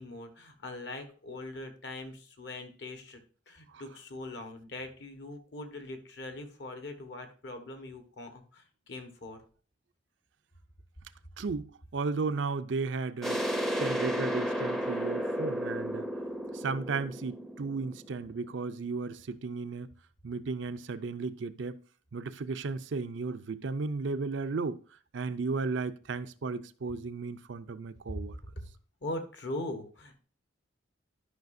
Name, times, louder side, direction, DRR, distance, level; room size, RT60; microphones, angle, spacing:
voice 1, 0.0-3.2 3.5-9.4 28.1-28.7 29.0-30.2, left 1 dB, 55° left, 1.3 m, -41 dB
voice 2, 11.4-13.4 13.8-16.1 16.5-19.9 20.2-21.8 22.1-24.8 25.1-28.4, right 4 dB, 65° right, 0.5 m, -34 dB
sound 1, 13.2-18.7, equal, ahead, 0.6 m, -33 dB
12.0 x 5.7 x 2.6 m
head